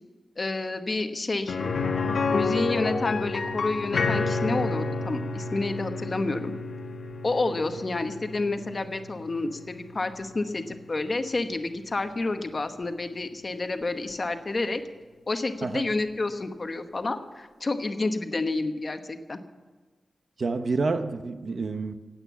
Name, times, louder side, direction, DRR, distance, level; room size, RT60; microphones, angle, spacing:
voice 1, 0.4-1.6 2.3-6.5 7.2-14.8 15.3-19.4, left 2 dB, 35° left, 8 dB, 1.0 m, -29 dB
sound 1, 1.5-11.3 11.6-11.7 14.1-14.2, left 4 dB, 80° left, 1.5 m, -30 dB
voice 2, 20.4-21.9, right 3 dB, 55° right, 9 dB, 0.9 m, -28 dB
16.5 x 8.8 x 7.3 m, 1.3 s
wide cardioid pair, 155°, 0 cm